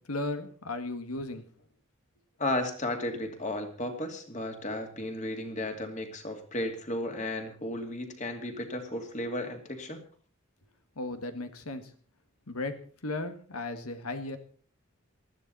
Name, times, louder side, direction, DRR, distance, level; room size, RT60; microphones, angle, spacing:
voice 1, 0.1-1.4 11.0-11.9 12.5-12.8 13.0-14.4, left 2 dB, 85° left, 8 dB, 1.8 m, -35 dB
voice 2, 2.4-10.0, left 1 dB, 35° left, 5 dB, 2.5 m, -34 dB
19.5 x 13.5 x 4.2 m, 0.42 s
head